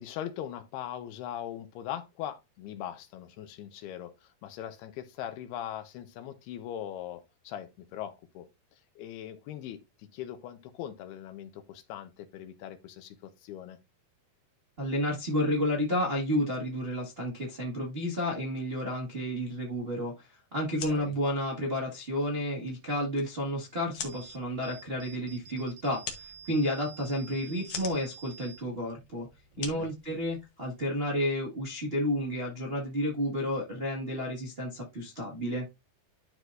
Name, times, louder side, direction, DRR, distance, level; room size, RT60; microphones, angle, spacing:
voice 1, 0.0-8.5 9.0-13.8 20.9-21.2 29.6-29.9, left 11 dB, 85° left, 3.0 m, -40 dB
voice 2, 14.8-29.3 29.6-35.6, equal, 80° right, 0.5 m, -31 dB
sound 1, 20.6-30.8, left 7 dB, 70° left, 1.3 m, -45 dB
parking-sensors, 24.1-30.5, right 6 dB, 35° right, 1.3 m, -51 dB
12.0 x 4.6 x 2.6 m
omnidirectional pair, 4.5 m